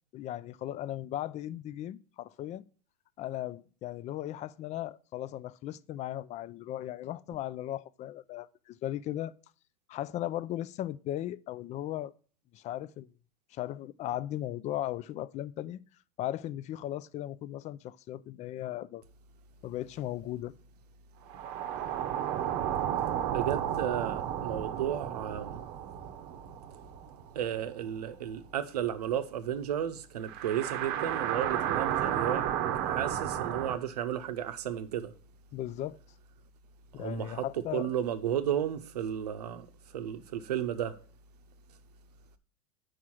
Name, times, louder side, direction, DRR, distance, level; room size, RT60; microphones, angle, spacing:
voice 1, 0.1-2.6 3.2-9.3 9.9-12.1 12.5-13.1 13.5-15.8 16.2-19.0 19.6-20.5 35.5-36.0 36.9-38.0, left 13 dB, 35° left, 0.4 m, -37 dB
sound 1, 21.3-27.9 28.2-28.3 30.3-33.8, right 10 dB, 55° right, 0.7 m, -33 dB
voice 2, 23.3-25.6 27.3-32.5 32.8-35.1 37.0-37.4 37.7-39.7 39.9-40.9, right 10 dB, 90° right, 0.7 m, -33 dB
4.9 x 4.8 x 5.7 m
hypercardioid pair, 95°, 20 cm